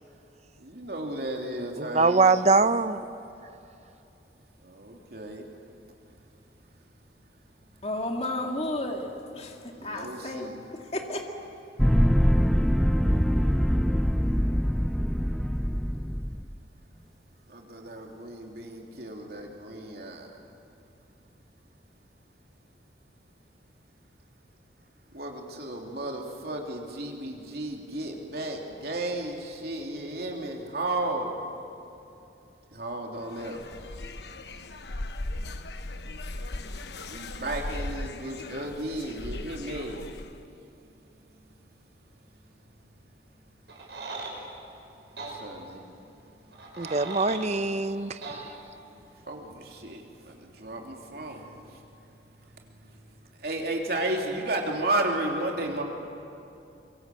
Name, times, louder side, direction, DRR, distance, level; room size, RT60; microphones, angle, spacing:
voice 1, 0.6-2.5 4.6-5.5 9.7-10.5 17.5-20.3 25.1-31.3 32.7-33.6 37.0-40.1 45.1-45.8 48.3-48.4 48.8-48.9 49.3-51.8 52.8-53.0 53.4-55.8, right 2 dB, 60° right, 1 dB, 3.2 m, -33 dB
voice 2, 1.8-3.0 46.8-48.5, right 3 dB, 40° right, 11 dB, 0.7 m, -23 dB
voice 3, 7.8-11.3, left 1 dB, 35° left, 2 dB, 2.1 m, -33 dB
sound 1, 11.8-16.4, equal, ahead, 0.6 m, -23 dB
sound 2, 33.2-40.4, left 2 dB, 70° left, 1.1 m, -38 dB
sound 3, 43.7-44.3 45.2-45.3 46.5-47.5 48.2-48.4, right 3 dB, 80° right, 5.5 m, -38 dB
24.5 x 23.5 x 7.7 m, 2.7 s
head